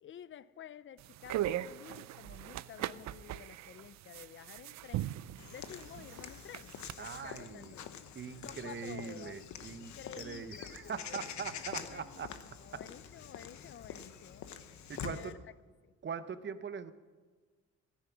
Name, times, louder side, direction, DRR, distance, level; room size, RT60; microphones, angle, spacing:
voice 1, 0.0-5.1 5.5-7.9 8.4-11.2 11.8-14.5 15.1-15.4 15.8-15.9, left 9 dB, 40° left, 17 dB, 0.6 m, -52 dB
sound 1, 1.0-6.9, right 13 dB, 65° right, 0.5 m, -40 dB
Walk footsteps / Bird vocalization bird call bird song, 5.4-15.3, left 8 dB, 70° left, 1.0 m, -46 dB
voice 2, 7.0-7.7 8.1-12.3 12.7-12.8 14.9-15.3 16.0-16.9, right 6 dB, 40° right, 12 dB, 0.9 m, -42 dB
14.0 x 10.0 x 6.1 m, 1.4 s
cardioid pair, 90°, 30 cm